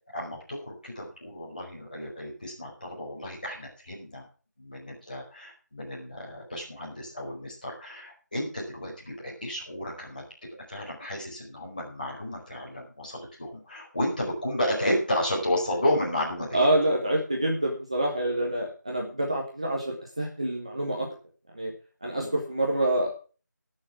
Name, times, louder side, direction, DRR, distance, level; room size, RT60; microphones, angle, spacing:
voice 1, 0.1-4.2 4.6-10.2 10.7-16.7 22.2-22.3, left 1 dB, 25° left, -3 dB, 4.9 m, -32 dB
voice 2, 16.5-21.1 21.5-21.7 22.0-23.1, right 1 dB, 20° right, -1 dB, 1.2 m, -27 dB
17.0 x 6.7 x 5.9 m, 0.38 s
figure-of-eight pair, 175°, 10 cm